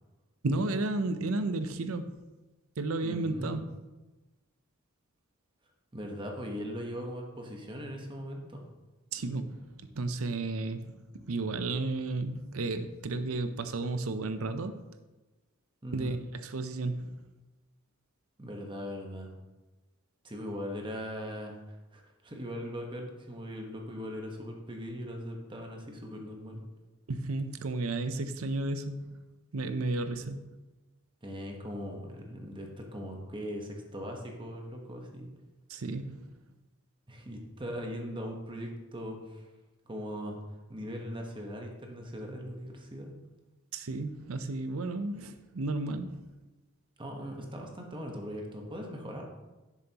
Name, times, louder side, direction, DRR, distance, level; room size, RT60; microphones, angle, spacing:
voice 1, 0.4-2.2 2.8-3.6 9.1-14.8 15.9-16.2 16.4-17.1 27.1-29.2 29.5-30.5 35.7-36.3 43.7-46.3, right 2 dB, 80° right, 9 dB, 0.6 m, -33 dB
voice 2, 3.0-3.6 5.9-8.6 15.8-16.1 18.4-19.3 20.2-21.6 21.9-26.6 31.2-35.3 37.1-39.4 39.9-40.4 40.7-43.1 47.0-49.2, equal, 25° right, 1 dB, 1.2 m, -40 dB
10.5 x 7.1 x 3.0 m, 1.1 s
head